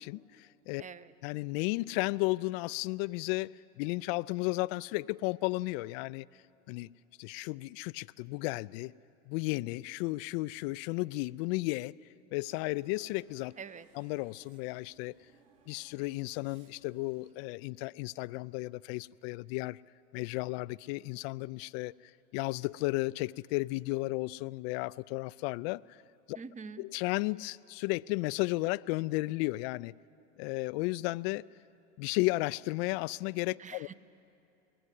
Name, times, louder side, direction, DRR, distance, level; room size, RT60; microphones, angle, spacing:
voice 1, 0.0-0.8 1.2-6.3 6.7-6.9 7.2-8.9 9.3-11.9 12.3-13.5 13.9-15.1 15.7-19.8 20.1-21.9 22.3-26.0 26.3-26.4 26.8-29.9 30.4-31.4 32.0-33.9, left 22 dB, 55° left, 0.5 m, -34 dB
voice 2, 0.8-1.1 13.6-13.9 26.3-26.8 33.6-33.9, right 5 dB, 20° right, 0.8 m, -45 dB
sound 1, 12.3-17.3, right 6 dB, 60° right, 3.3 m, -65 dB
23.0 x 19.0 x 8.3 m
hypercardioid pair, 90°, 37 cm